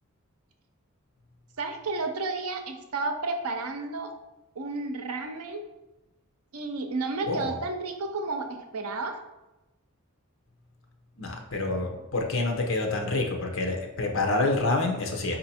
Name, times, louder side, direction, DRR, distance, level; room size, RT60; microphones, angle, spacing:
voice 1, 1.6-4.1 4.6-5.6 6.5-9.2, right 3 dB, 85° right, 5 dB, 0.6 m, -32 dB
voice 2, 7.2-7.6 11.2-15.4, left 2 dB, 65° left, 2 dB, 0.8 m, -27 dB
4.5 x 2.8 x 4.2 m, 0.98 s
head